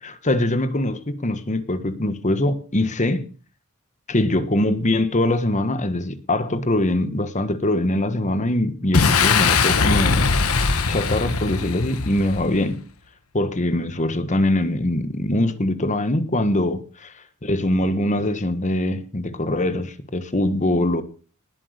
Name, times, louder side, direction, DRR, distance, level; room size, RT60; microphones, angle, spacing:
voice 1, 0.0-3.2 4.1-10.3 10.9-12.8 13.3-16.8 17.4-21.0, left 1 dB, 35° left, 1.3 m, -22 dB
Boom, 8.9-12.6, left 4 dB, 80° left, 1.4 m, -20 dB
19.5 x 7.9 x 6.6 m
head